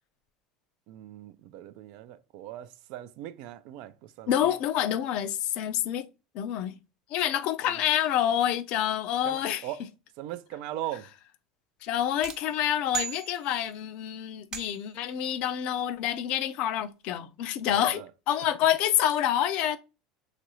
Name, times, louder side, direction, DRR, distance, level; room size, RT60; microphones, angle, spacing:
voice 1, 0.9-4.5 7.7-7.9 9.2-9.9 10.2-11.1 17.6-18.1, right 13 dB, 65° right, 0.3 m, -40 dB
voice 2, 4.3-6.1 6.3-6.7 7.1-9.6 11.8-19.8, left 11 dB, 60° left, 0.4 m, -27 dB
sound 1, 12.2-13.9 14.5-15.1, right 6 dB, 35° right, 0.7 m, -38 dB
3.0 x 2.4 x 2.9 m
supercardioid pair, 115°, 2 cm